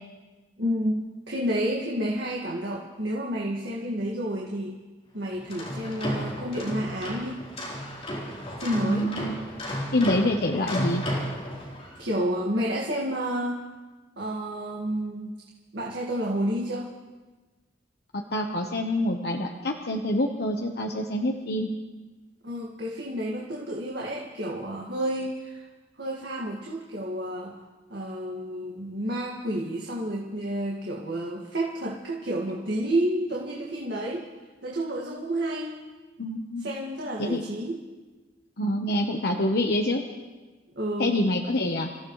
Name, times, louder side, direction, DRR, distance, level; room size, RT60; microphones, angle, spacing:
voice 1, 0.6-4.8 5.1-7.4 8.6-9.1 12.0-13.6 14.2-15.3 15.7-16.9 22.4-25.6 26.0-27.6 27.9-34.3 34.6-35.8 36.6-37.8 40.8-41.2, right 1 dB, 70° right, -3 dB, 1.9 m, -30 dB
sound 1, 5.3-12.0, equal, 35° left, 3.8 m, -33 dB
voice 2, 8.8-9.4 9.9-11.0 18.1-21.7 36.2-36.7 37.2-37.4 38.6-40.0 41.0-41.9, left 1 dB, 60° left, 2 dB, 1.0 m, -26 dB
28.0 x 15.0 x 3.2 m, 1.3 s
head